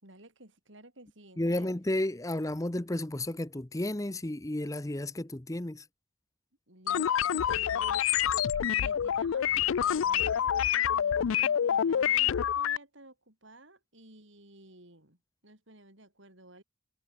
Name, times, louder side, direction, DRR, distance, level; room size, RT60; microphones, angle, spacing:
voice 1, 0.0-1.7 6.7-8.1 8.7-15.2 15.4-16.6, right 1 dB, 65° right, 7.8 m, -54 dB
voice 2, 1.4-5.8, left 1 dB, 15° left, 0.8 m, -32 dB
sound 1, 6.9-12.8, left 9 dB, 80° left, 0.4 m, -27 dB
head